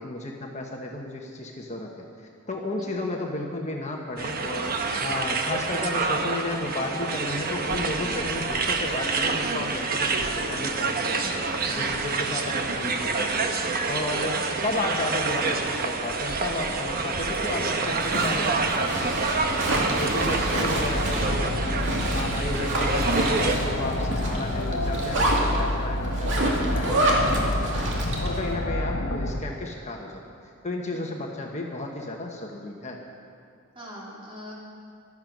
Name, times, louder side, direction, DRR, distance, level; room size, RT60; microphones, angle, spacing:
voice 1, 0.0-2.1 2.5-19.5 20.0-21.8 22.1-30.1 30.6-33.0, left 2 dB, 35° left, 0 dB, 1.2 m, -33 dB
sound 1, 4.2-23.6, right 3 dB, 45° right, 1.0 m, -27 dB
Zipper (clothing), 17.2-28.4, right 1 dB, 65° right, 2.4 m, -28 dB
sound 2, 19.2-29.4, left 1 dB, 65° left, 0.9 m, -29 dB
voice 2, 27.3-28.0 30.9-31.1 33.8-34.5, equal, 25° right, -5 dB, 3.6 m, -44 dB
14.5 x 12.0 x 6.2 m, 2.4 s
head